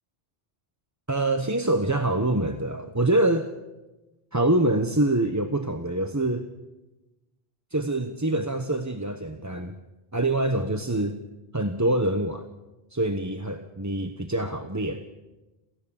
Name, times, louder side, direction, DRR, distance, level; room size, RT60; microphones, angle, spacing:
voice 1, 1.1-3.5 4.3-6.5 7.7-9.7 10.1-11.2 11.5-12.4 12.9-15.0, right 1 dB, 15° right, 7 dB, 1.0 m, -25 dB
28.0 x 16.0 x 7.1 m, 1.1 s
omnidirectional pair, 1.1 m